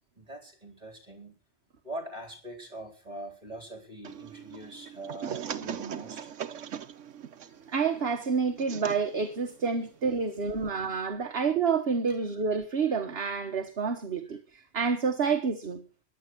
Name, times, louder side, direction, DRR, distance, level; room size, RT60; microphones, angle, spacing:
voice 1, 0.2-1.3 1.8-6.2 10.6-10.7, right 1 dB, 35° right, 3.9 m, -42 dB
sound 1, 4.0-10.7, right 8 dB, 80° right, 1.2 m, -41 dB
voice 2, 7.7-15.8, right 5 dB, 60° right, 1.5 m, -28 dB
15.0 x 10.5 x 6.0 m
omnidirectional pair, 1.2 m